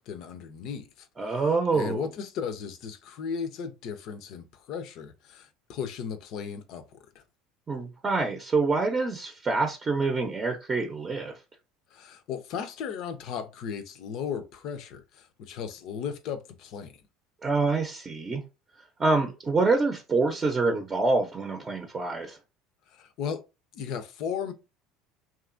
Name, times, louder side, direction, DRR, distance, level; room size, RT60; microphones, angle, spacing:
voice 1, 0.1-1.1 1.7-6.8 11.9-16.9 22.9-23.4 23.7-24.5, left 7 dB, 60° left, 0.5 m, -36 dB
voice 2, 1.2-2.1 7.7-11.3 17.4-18.4 19.0-22.4, right 3 dB, 30° right, 0.6 m, -26 dB
2.9 x 2.4 x 2.5 m
hypercardioid pair, 75°, 0 cm